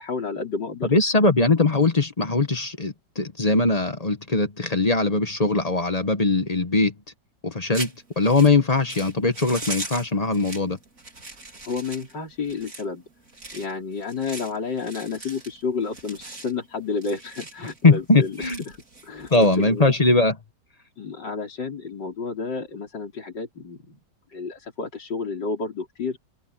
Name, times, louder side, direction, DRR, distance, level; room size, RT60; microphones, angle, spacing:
voice 1, 0.0-0.9 11.6-13.0 13.5-19.9 21.0-24.0 24.3-26.2, left 4 dB, 65° left, 4.7 m, -31 dB
voice 2, 0.8-6.9 7.4-10.8 17.8-18.6 19.3-20.4, left 3 dB, 25° left, 1.0 m, -21 dB
sound 1, 7.7-20.1, right 2 dB, 45° right, 4.4 m, -40 dB
omnidirectional pair, 2.0 m